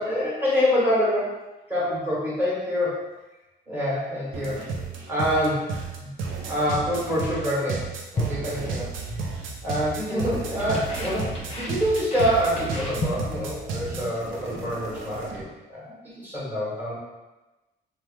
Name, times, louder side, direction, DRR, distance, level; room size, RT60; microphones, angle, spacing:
voice 1, 0.0-3.0 3.7-4.6 5.1-5.7 6.0-6.1 6.5-7.9 8.1-8.8 9.6-16.9, equal, 10° right, -8 dB, 1.5 m, -26 dB
sound 1, 4.3-15.4, right 4 dB, 85° right, 0.5 m, -33 dB
sound 2, 8.2-9.3 9.5-9.9 10.1-13.5 13.8-14.1 14.4-14.7, left 1 dB, 30° left, 0.7 m, -34 dB
3.0 x 2.1 x 3.3 m, 1.1 s
cardioid pair, 90°, 20 cm